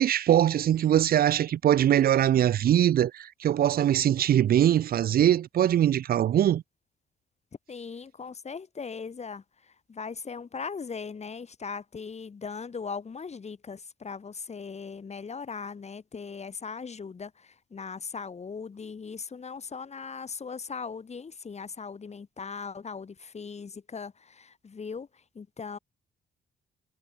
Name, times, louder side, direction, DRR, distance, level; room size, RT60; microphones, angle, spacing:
voice 1, 0.0-6.6, right 11 dB, 50° right, 0.5 m, -22 dB
voice 2, 7.7-9.4 9.9-25.1 25.4-25.8, left 5 dB, 35° left, 2.0 m, -39 dB
cardioid pair, 90°, 20 cm